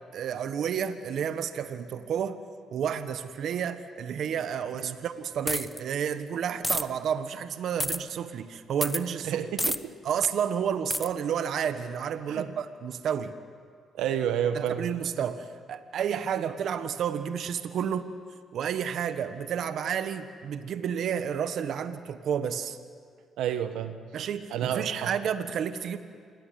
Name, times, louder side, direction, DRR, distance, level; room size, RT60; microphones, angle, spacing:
voice 1, 0.1-2.4 2.7-9.4 10.0-13.3 14.5-18.1 18.5-22.8 24.1-26.0, right 8 dB, 70° right, 10 dB, 1.4 m, -31 dB
sound 1, 5.5-5.8 6.6-6.8 7.8-8.0 8.8-9.0 9.6-9.8 10.9-11.1, equal, ahead, 1.0 m, -28 dB
voice 2, 9.2-10.0 12.3-12.5 13.9-14.9 23.4-24.0 24.5-25.1, right 9 dB, 90° right, 9 dB, 1.4 m, -30 dB
28.0 x 21.5 x 9.4 m, 2.2 s
cardioid pair, 90°, 0 cm